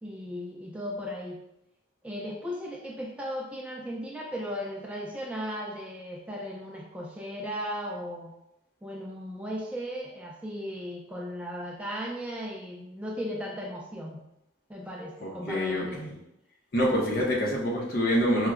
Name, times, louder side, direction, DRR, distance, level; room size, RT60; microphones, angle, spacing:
voice 1, 0.0-1.4 2.0-8.3 8.8-14.2 14.7-16.0, equal, 5° right, -3 dB, 0.3 m, -36 dB
voice 2, 15.2-16.1 16.7-18.5, equal, 50° left, -3 dB, 0.7 m, -26 dB
4.5 x 2.0 x 2.4 m, 0.81 s
head